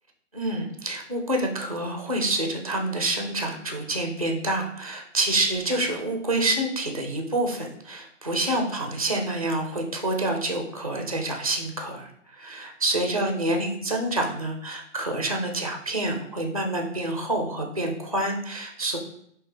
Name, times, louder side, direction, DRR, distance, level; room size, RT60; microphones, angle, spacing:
voice 1, 0.3-19.0, right 1 dB, 30° right, 3 dB, 0.4 m, -27 dB
5.5 x 2.8 x 3.2 m, 0.70 s
hypercardioid pair, 170°, 38 cm